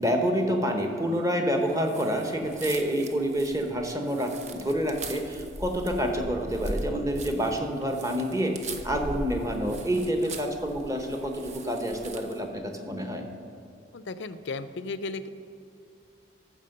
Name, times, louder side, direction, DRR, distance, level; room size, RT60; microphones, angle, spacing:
voice 1, 0.0-13.2, equal, 20° right, 3 dB, 1.0 m, -28 dB
sound 1, 1.8-12.5, right 2 dB, 40° right, 0.7 m, -40 dB
voice 2, 13.9-15.3, left 3 dB, 85° left, 13 dB, 0.5 m, -35 dB
14.0 x 4.6 x 6.6 m, 2.7 s
head